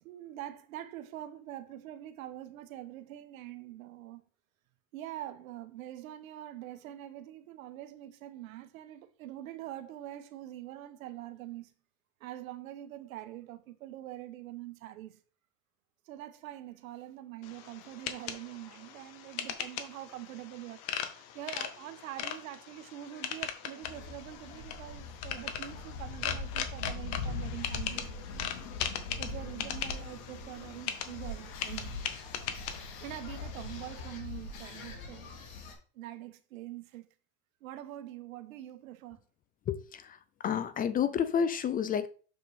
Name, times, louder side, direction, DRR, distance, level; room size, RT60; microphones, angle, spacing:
voice 1, 0.0-4.2 4.9-11.7 12.2-15.2 16.0-28.1 29.2-32.0 33.0-35.3 35.9-37.1 37.6-39.2, right 13 dB, 85° right, 1.0 m, -44 dB
sound 1, 17.4-34.2, left 9 dB, 60° left, 1.3 m, -40 dB
sound 2, 23.8-35.7, left 3 dB, 85° left, 2.8 m, -41 dB
voice 2, 39.7-42.1, left 8 dB, 25° left, 0.3 m, -30 dB
6.8 x 6.4 x 3.4 m
supercardioid pair, 115°, 40 cm